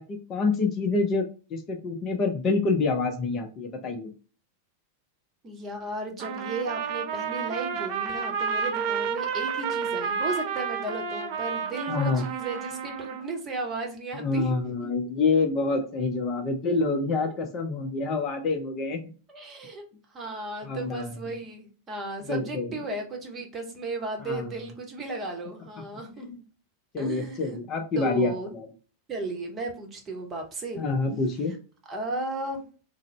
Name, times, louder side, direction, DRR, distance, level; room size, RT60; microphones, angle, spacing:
voice 1, 0.0-4.1 11.9-12.2 14.1-19.0 20.6-21.2 22.3-22.8 24.2-24.5 26.3-26.4 26.9-28.7 30.8-31.5, left 3 dB, 30° left, 4 dB, 0.5 m, -27 dB
voice 2, 5.4-14.5 19.3-19.9 20.1-26.3 27.0-27.6 28.0-28.5 29.1-30.8 31.9-32.6, right 2 dB, 25° right, 2 dB, 0.9 m, -35 dB
Trumpet, 6.2-13.3, right 6 dB, 45° right, 0.5 m, -31 dB
3.8 x 2.0 x 3.1 m, 0.37 s
figure-of-eight pair, 90°, 0 cm